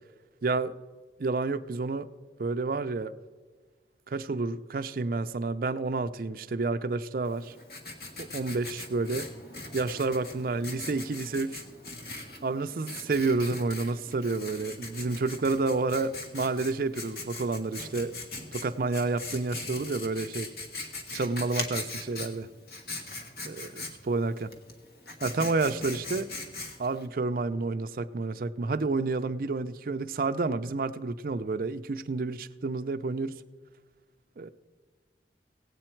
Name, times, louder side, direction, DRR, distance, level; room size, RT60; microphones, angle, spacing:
voice 1, 0.4-0.7 1.2-2.1 2.4-3.1 4.1-7.5 8.2-9.3 9.7-11.6 12.4-18.1 18.5-20.5 21.1-22.5 23.4-24.5 25.2-26.3 26.8-33.3 34.4-34.5, right 3 dB, 50° right, 11 dB, 0.4 m, -30 dB
Writing, 7.2-27.1, left 3 dB, 60° left, 1.4 m, -41 dB
17.0 x 8.6 x 4.5 m, 1.5 s
head